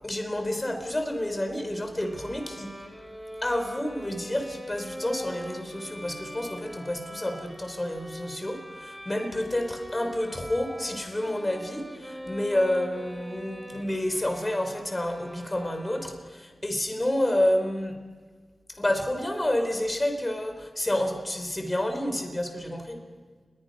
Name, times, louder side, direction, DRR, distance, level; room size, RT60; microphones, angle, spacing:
voice 1, 0.0-2.8 3.4-18.0 18.8-23.0, left 1 dB, 20° left, 5 dB, 3.7 m, -29 dB
Bowed string instrument, 2.0-16.5, equal, ahead, 3.7 m, -43 dB
29.5 x 22.0 x 5.3 m, 1.5 s
wide cardioid pair, 105°, 0 cm